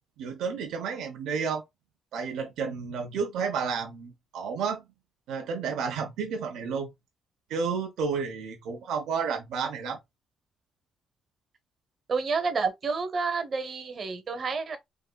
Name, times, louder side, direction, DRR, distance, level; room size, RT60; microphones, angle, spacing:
voice 1, 0.2-1.6 2.1-4.8 5.3-6.9 7.5-10.0, right 5 dB, 85° right, 0.8 m, -31 dB
voice 2, 12.1-14.8, right 4 dB, 45° right, 0.9 m, -29 dB
3.7 x 2.8 x 2.3 m
cardioid pair, 90°, 0 cm